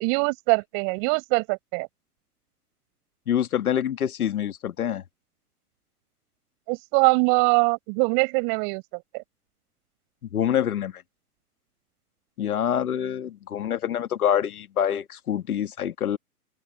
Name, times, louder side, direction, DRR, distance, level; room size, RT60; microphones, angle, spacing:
voice 1, 0.0-1.9 6.7-9.2, right 40 dB or more, 35° right, 4.7 m, -23 dB
voice 2, 3.3-5.0 10.3-11.0 12.4-16.2, left 9 dB, 65° left, 1.8 m, -26 dB
open air
figure-of-eight pair, 120°, 47 cm